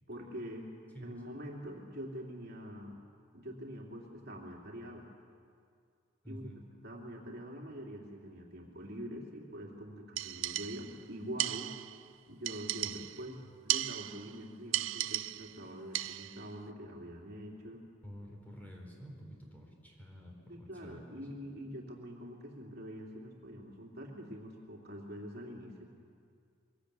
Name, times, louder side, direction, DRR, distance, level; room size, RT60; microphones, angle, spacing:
voice 1, 0.1-0.7 1.0-3.0 3.3-5.1 6.3-6.5 6.8-11.7 12.3-17.8 20.5-25.9, equal, 55° right, -1 dB, 2.8 m, -45 dB
voice 2, 6.2-6.7 12.8-13.0 18.0-21.2, equal, 10° left, 0 dB, 4.3 m, -49 dB
sound 1, 10.2-11.0 11.4-12.0 12.4-13.3 13.7-14.3 14.7-15.6 15.9-16.4, right 15 dB, 85° right, 0.4 m, -36 dB
23.0 x 18.0 x 8.2 m, 2.3 s
head